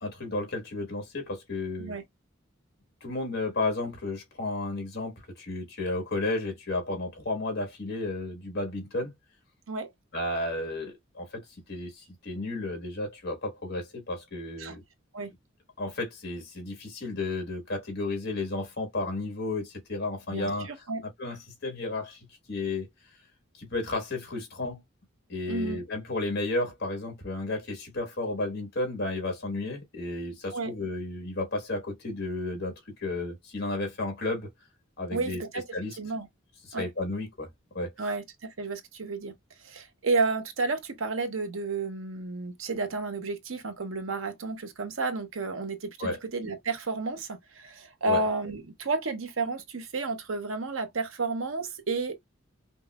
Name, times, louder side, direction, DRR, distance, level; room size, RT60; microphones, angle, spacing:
voice 1, 0.0-2.0 3.0-9.1 10.1-11.4 11.7-14.8 15.8-20.7 21.2-22.2 22.5-22.9 23.6-24.8 25.3-32.7 33.0-34.5 35.0-35.4 35.7-36.0 36.7-37.5 37.7-37.9 46.0-46.2 48.1-48.2, left 2 dB, 55° left, 1.5 m, -32 dB
voice 2, 20.3-21.0 25.5-25.8 30.5-30.7 35.1-35.6 36.0-36.3 36.7-36.8 38.0-39.3 39.6-52.2, right 3 dB, 80° right, 0.8 m, -31 dB
5.2 x 2.0 x 2.3 m
head